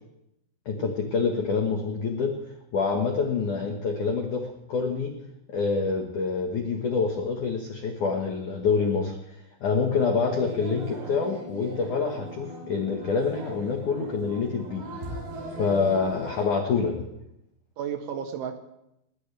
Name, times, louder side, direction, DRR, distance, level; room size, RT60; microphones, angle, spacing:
voice 1, 0.7-2.4 2.7-4.4 4.7-5.1 5.5-9.2 9.6-14.9 15.6-17.1, left 5 dB, 70° left, 2 dB, 1.8 m, -26 dB
sound 1, 10.3-16.5, right 1 dB, 50° right, 5.7 m, -39 dB
voice 2, 17.8-18.6, right 8 dB, 75° right, 7 dB, 3.3 m, -34 dB
20.5 x 17.5 x 3.4 m, 0.81 s
omnidirectional pair, 6.0 m